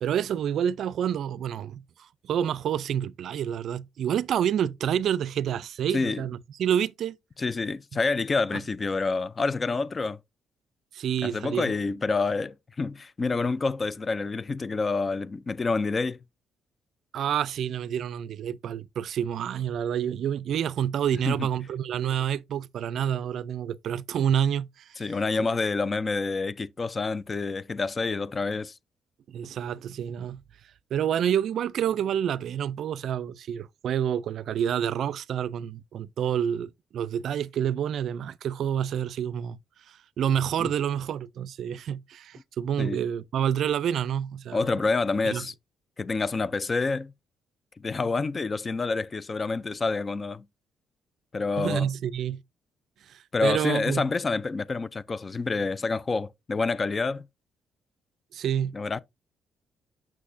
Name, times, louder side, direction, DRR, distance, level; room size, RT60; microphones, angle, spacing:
voice 1, 0.0-7.2 10.9-11.7 17.1-25.2 29.3-30.4 30.9-39.6 39.9-44.8 45.2-45.5 51.6-52.4 53.1-54.0 58.3-58.8, right 9 dB, 70° right, 0.3 m, -28 dB
voice 2, 5.9-6.3 7.4-10.2 11.2-16.2 21.3-21.5 25.0-28.7 40.6-40.7 42.8-43.0 44.5-45.5 46.0-47.1 47.8-50.4 51.3-51.9 53.3-57.3 58.7-59.0, left 3 dB, 30° left, 0.4 m, -28 dB
6.4 x 6.1 x 2.5 m
cardioid pair, 90°, 0 cm